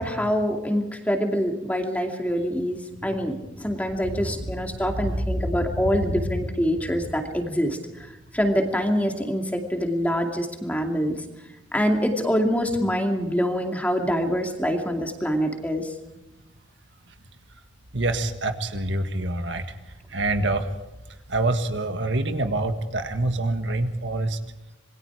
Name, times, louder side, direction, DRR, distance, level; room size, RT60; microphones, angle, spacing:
voice 1, 0.0-7.8 8.3-11.2 11.7-15.9, equal, 10° left, 3 dB, 2.4 m, -25 dB
voice 2, 17.9-19.7 20.1-20.7 21.3-24.4, right 2 dB, 70° right, 7 dB, 1.7 m, -26 dB
27.0 x 22.0 x 5.0 m, 0.99 s
head